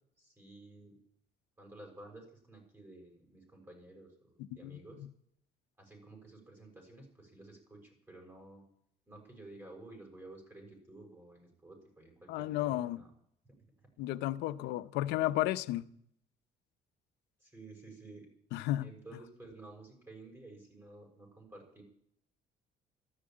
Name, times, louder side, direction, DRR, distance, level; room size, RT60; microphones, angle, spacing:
voice 1, 0.2-1.0 1.6-5.0 5.8-8.6 9.1-13.1 13.4-13.5 14.4-14.8 15.0-15.3 17.4-18.3 18.8-21.8, right 2 dB, 15° right, 6.2 m, -53 dB
voice 2, 12.3-13.0 14.0-15.9 18.5-18.9, left 15 dB, 90° left, 0.8 m, -33 dB
13.5 x 11.0 x 8.9 m
cardioid pair, 110°, 17 cm